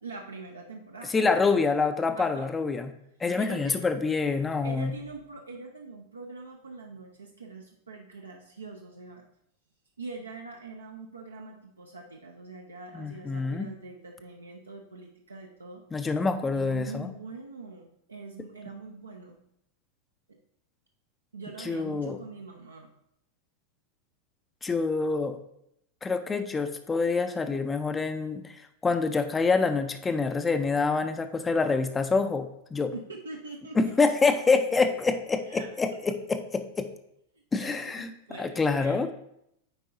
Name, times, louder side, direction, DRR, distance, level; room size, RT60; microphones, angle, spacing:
voice 1, 0.0-1.1 2.2-2.5 3.4-3.9 4.4-9.2 10.0-15.8 16.4-19.4 20.3-20.4 21.3-22.9 32.9-33.9 34.2-34.3 35.4-36.0 37.6-39.1, right 3 dB, 75° right, 1 dB, 0.6 m, -43 dB
voice 2, 1.1-2.9 3.2-4.9 13.0-13.7 15.9-17.1 21.6-22.2 24.6-25.4 26.0-32.9 33.8-36.9 37.5-38.1 38.4-39.1, left 4 dB, 15° left, 8 dB, 0.4 m, -26 dB
8.8 x 4.6 x 2.6 m, 0.77 s
figure-of-eight pair, 90°, 0 cm